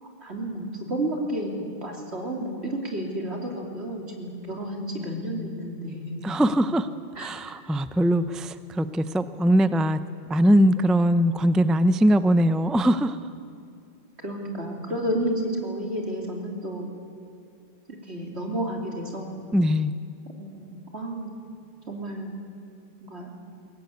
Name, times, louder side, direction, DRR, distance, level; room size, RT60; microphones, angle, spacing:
voice 1, 0.0-6.2 7.2-7.3 14.2-16.8 18.1-19.3 20.4-21.3 21.9-22.3 23.0-23.3, right 1 dB, 80° right, 1 dB, 3.6 m, -31 dB
voice 2, 6.2-6.9 7.2-10.0 10.3-13.2 19.5-19.9, equal, ahead, 13 dB, 0.4 m, -21 dB
22.0 x 18.0 x 9.5 m, 2.4 s
omnidirectional pair, 1.1 m